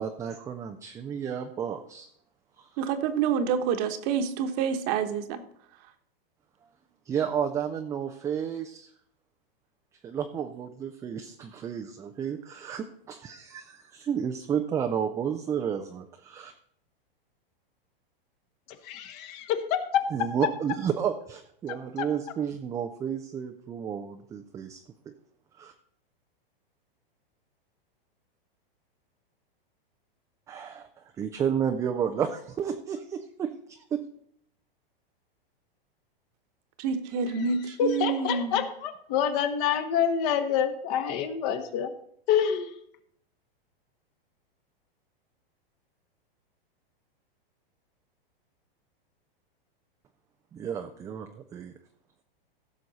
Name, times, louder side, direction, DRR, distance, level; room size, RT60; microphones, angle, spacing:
voice 1, 0.0-2.1 2.6-2.9 7.1-8.9 10.0-16.5 20.1-24.8 25.6-25.7 30.5-34.0 50.5-51.7, right 8 dB, 10° right, 5 dB, 0.3 m, -32 dB
voice 2, 2.8-5.4 36.8-38.6, right 6 dB, 45° right, 8 dB, 1.1 m, -28 dB
voice 3, 18.8-20.3 21.7-22.1 37.3-41.9 42.3-42.7, left 8 dB, 45° left, 9 dB, 1.2 m, -27 dB
15.5 x 6.4 x 4.1 m, 0.68 s
hypercardioid pair, 130°, 30 cm